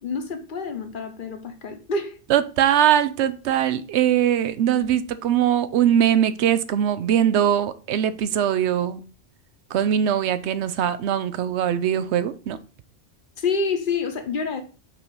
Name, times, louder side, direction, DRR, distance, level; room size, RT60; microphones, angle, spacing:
voice 1, 0.0-2.2 13.4-14.6, left 4 dB, 50° left, 1.0 m, -27 dB
voice 2, 2.3-9.0 9.7-12.6, right 10 dB, 75° right, 0.8 m, -21 dB
5.8 x 3.0 x 5.5 m
omnidirectional pair, 1.2 m